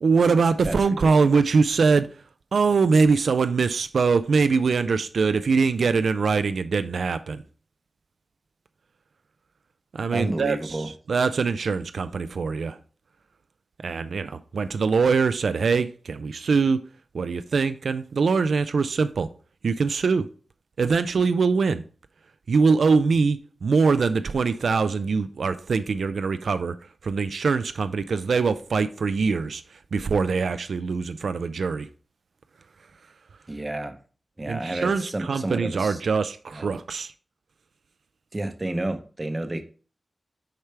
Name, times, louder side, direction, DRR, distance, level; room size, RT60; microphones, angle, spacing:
voice 1, 0.0-2.1 2.5-7.4 9.9-12.8 13.8-16.9 17.1-19.3 19.6-20.3 20.8-21.8 22.5-26.8 27.0-31.9 34.5-37.1, right 4 dB, 85° right, 0.3 m, -23 dB
voice 2, 1.0-1.4 10.1-10.9 33.5-34.0 34.4-36.0 36.5-36.7 38.3-39.6, right 1 dB, 25° right, 0.7 m, -30 dB
6.6 x 4.5 x 3.3 m
wide cardioid pair, 100°, 0 cm